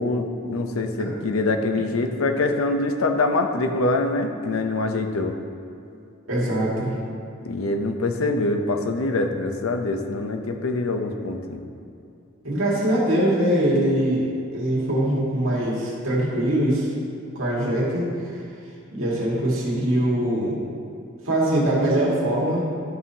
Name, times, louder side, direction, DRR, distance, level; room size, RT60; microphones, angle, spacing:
voice 1, 0.0-5.4 7.4-11.6, left 2 dB, 85° left, 5 dB, 0.6 m, -24 dB
voice 2, 6.3-6.9 12.4-16.9 17.4-18.4 18.9-20.6 21.3-22.7, right 1 dB, 75° right, -5 dB, 1.8 m, -22 dB
11.5 x 5.5 x 2.8 m, 2.5 s
head